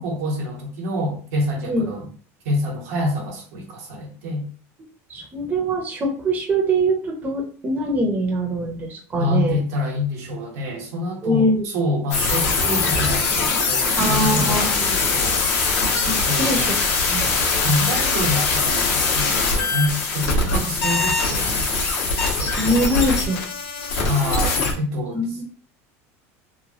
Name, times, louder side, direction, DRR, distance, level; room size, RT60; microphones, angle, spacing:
voice 1, 0.0-2.1 2.4-4.5 9.2-15.4 16.0-16.8 17.4-21.7 22.4-22.8 24.0-25.4, left 1 dB, 75° right, 0 dB, 1.1 m, -27 dB
voice 2, 5.1-9.6 11.2-11.6 14.0-15.0 15.8-16.7 17.1-17.4 22.4-23.4 25.1-25.4, right 1 dB, 20° right, 0 dB, 0.7 m, -23 dB
sound 1, 12.1-24.7, left 4 dB, 65° left, 1.2 m, -22 dB
3.0 x 2.2 x 2.8 m, 0.42 s
supercardioid pair, 135°, 8 cm